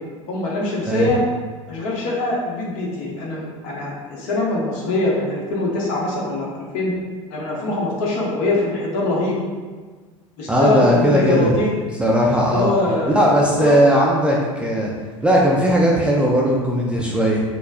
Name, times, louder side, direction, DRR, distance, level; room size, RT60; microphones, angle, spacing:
voice 1, 0.3-1.2 1.7-6.9 7.3-9.4 10.4-11.7 12.5-13.3 13.6-13.8, left 2 dB, 50° left, -3 dB, 0.8 m, -23 dB
voice 2, 10.5-11.6 12.0-12.7 13.1-14.9 15.2-17.4, equal, 5° right, -4 dB, 0.3 m, -17 dB
4.1 x 2.0 x 2.5 m, 1.4 s
figure-of-eight pair, 70°, 17 cm